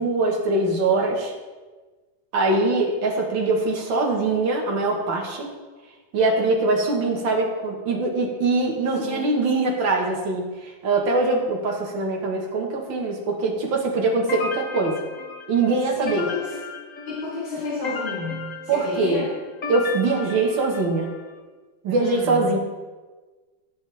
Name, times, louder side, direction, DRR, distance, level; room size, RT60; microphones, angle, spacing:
voice 1, 0.0-1.3 2.3-5.5 6.1-15.0 15.5-16.3 18.7-19.2 19.7-21.1 21.8-22.6, right 3 dB, 65° right, 0 dB, 2.4 m, -22 dB
sound 1, 14.3-21.2, left 4 dB, 45° left, 1.4 m, -34 dB
voice 2, 15.9-16.6 17.1-19.3 22.0-22.5, left 4 dB, 60° left, -10 dB, 4.4 m, -31 dB
16.5 x 7.7 x 3.5 m, 1.3 s
omnidirectional pair, 2.3 m